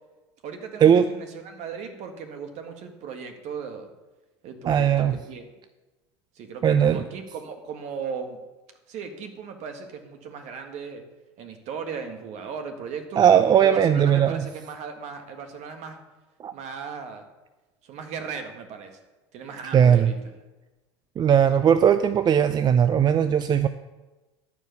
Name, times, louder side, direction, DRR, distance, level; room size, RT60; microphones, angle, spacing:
voice 1, 0.4-3.9 4.4-5.4 6.3-8.4 8.9-11.0 11.4-13.2 13.6-16.0 16.5-17.2 17.8-19.0 19.3-20.2, right 6 dB, 50° right, 6 dB, 1.7 m, -37 dB
voice 2, 4.7-5.2 6.6-7.0 13.2-14.5 16.4-16.5 19.7-20.1 21.2-23.7, right 8 dB, 30° right, 11 dB, 0.4 m, -18 dB
11.5 x 4.7 x 7.0 m, 1.1 s
hypercardioid pair, 85°, 15 cm